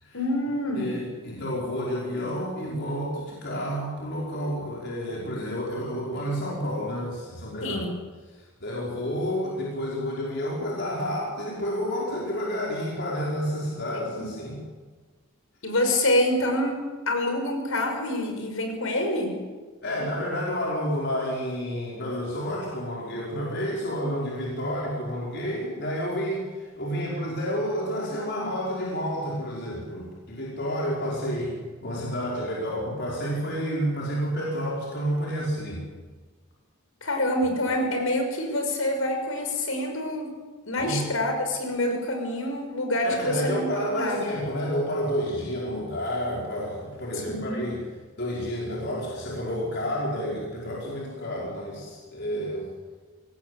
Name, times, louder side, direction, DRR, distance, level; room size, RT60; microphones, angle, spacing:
voice 1, 0.1-0.9 7.6-7.9 14.2-14.3 15.6-16.8 17.1-19.4 37.0-40.3 40.7-44.2 47.2-47.7, left 1 dB, 75° left, 4 dB, 6.0 m, -26 dB
voice 2, 0.7-7.8 8.6-14.6 19.8-31.5 31.8-35.8 40.8-41.1 43.0-47.8 48.2-52.7, equal, 50° left, -4 dB, 5.4 m, -30 dB
24.5 x 18.5 x 8.4 m, 1.3 s
head